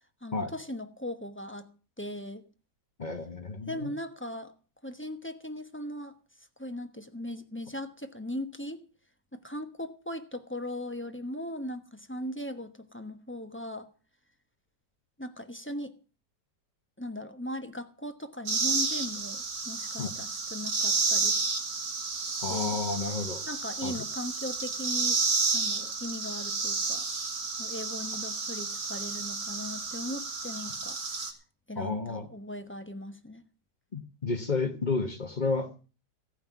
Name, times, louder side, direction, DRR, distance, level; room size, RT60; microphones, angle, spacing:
voice 1, 0.2-1.7 2.0-2.4 3.7-4.5 4.8-6.1 6.6-8.9 9.3-13.9 15.2-15.9 17.0-21.5 22.2-22.8 23.4-25.2 25.5-27.0 27.6-31.0 31.7-33.4, left 1 dB, 10° left, 0.7 m, -38 dB
voice 2, 3.0-3.9 20.0-20.1 22.4-23.4 23.8-24.0 31.7-32.3 33.9-35.9, left 4 dB, 30° left, 1.1 m, -31 dB
sound 1, 18.5-31.3, right 4 dB, 70° right, 2.8 m, -31 dB
16.5 x 5.6 x 9.2 m
omnidirectional pair, 2.0 m